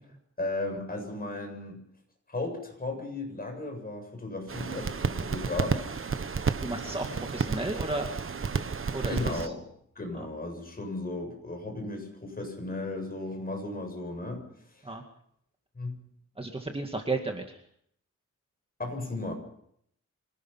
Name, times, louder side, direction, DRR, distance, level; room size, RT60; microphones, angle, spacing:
voice 1, 0.4-1.8 2.3-5.8 9.1-9.6 10.0-14.4 14.7-14.8 15.7-16.0 18.8-19.3, left 2 dB, 30° left, 3 dB, 7.7 m, -35 dB
sound 1, 4.5-9.5, right 5 dB, 45° right, 1.2 m, -31 dB
voice 2, 6.4-8.1 8.9-9.5 10.1-10.3 14.8-15.0 16.4-17.6, right 2 dB, 20° right, 3 dB, 2.1 m, -34 dB
26.0 x 18.0 x 5.8 m, 0.69 s
wide cardioid pair, 125°, 31 cm